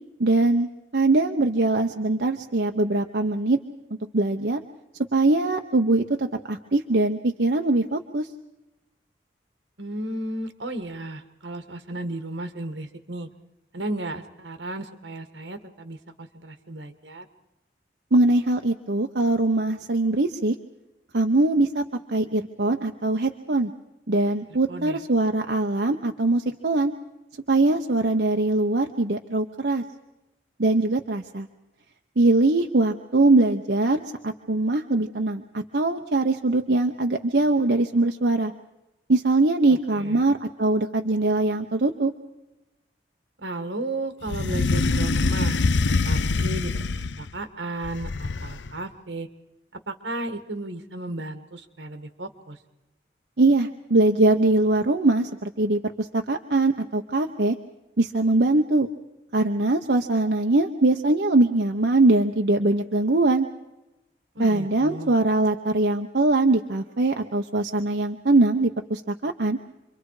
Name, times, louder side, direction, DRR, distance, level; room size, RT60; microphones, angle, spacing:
voice 1, 0.2-3.6 4.1-4.6 5.1-8.3 18.1-20.5 21.1-23.7 24.1-26.9 27.5-29.8 30.6-31.5 32.2-34.0 34.2-38.5 39.1-42.1 53.4-57.6 58.0-58.9 59.3-63.5 64.4-69.6, right 2 dB, 70° right, 4 dB, 0.9 m, -22 dB
voice 2, 9.8-13.3 13.7-17.3 24.7-25.0 39.7-40.3 43.4-45.6 45.8-49.3 49.7-52.6 64.4-65.1, right 1 dB, 85° right, 8 dB, 1.8 m, -34 dB
sound 1, 44.3-47.3 47.8-48.7, left 3 dB, 85° left, 0.6 m, -24 dB
27.5 x 23.5 x 4.9 m, 0.99 s
head